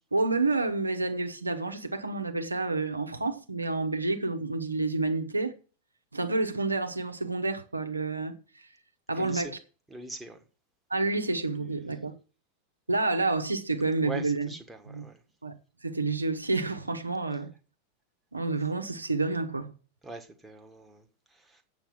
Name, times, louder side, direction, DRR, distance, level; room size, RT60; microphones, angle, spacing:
voice 1, 0.1-5.5 6.1-8.7 9.1-9.6 10.9-12.2 12.9-14.5 14.9-15.0 15.4-15.6 15.8-17.5 18.3-19.7, right 3 dB, 80° right, 1.1 m, -29 dB
voice 2, 9.2-9.5 9.9-10.4 14.0-15.2 20.0-21.6, right 3 dB, 5° right, 1.5 m, -42 dB
8.3 x 6.9 x 7.2 m
figure-of-eight pair, 90°, 0 cm